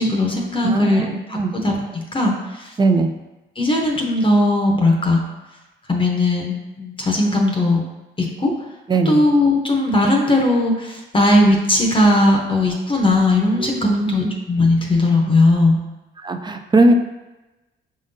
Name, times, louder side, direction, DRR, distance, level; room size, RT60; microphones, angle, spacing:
voice 1, 0.0-2.7 3.6-5.2 5.9-7.8 8.2-8.5 9.0-15.8, left 1 dB, 25° left, 0 dB, 0.8 m, -18 dB
voice 2, 0.6-1.1 1.3-1.5 2.8-3.1 8.9-9.2 13.6-14.1 16.2-16.9, right 2 dB, 20° right, 6 dB, 0.4 m, -18 dB
5.0 x 3.7 x 2.7 m, 1.1 s
cardioid pair, 90°, 20 cm